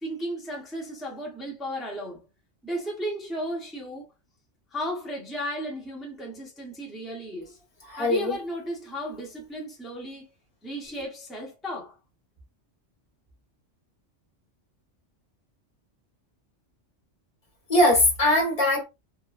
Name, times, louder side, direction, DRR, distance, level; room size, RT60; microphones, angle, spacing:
voice 1, 0.0-2.2 2.6-4.1 4.7-7.6 8.0-10.3 10.6-12.0, equal, ahead, 0.7 m, -34 dB
voice 2, 7.9-8.3 17.7-18.8, left 1 dB, 30° left, 1.5 m, -21 dB
2.9 x 2.4 x 2.4 m
omnidirectional pair, 1.2 m